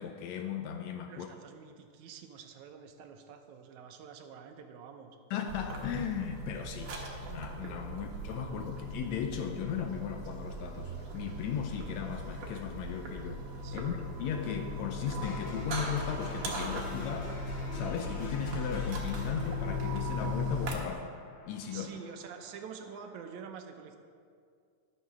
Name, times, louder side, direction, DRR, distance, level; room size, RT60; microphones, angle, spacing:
voice 1, 0.0-1.3 5.3-7.0 7.2-13.4 13.7-17.3 17.7-21.1 21.5-22.0, left 7 dB, 80° left, 5 dB, 1.7 m, -37 dB
voice 2, 1.1-5.2 7.9-8.0 13.6-14.0 21.7-24.0, right 7 dB, 80° right, 6 dB, 2.1 m, -47 dB
sound 1, 5.5-20.7, left 1 dB, 55° right, 2.0 m, -38 dB
sound 2, 15.2-23.2, left 1 dB, 65° left, 2.9 m, -47 dB
11.5 x 6.7 x 6.1 m, 2.2 s
omnidirectional pair, 3.5 m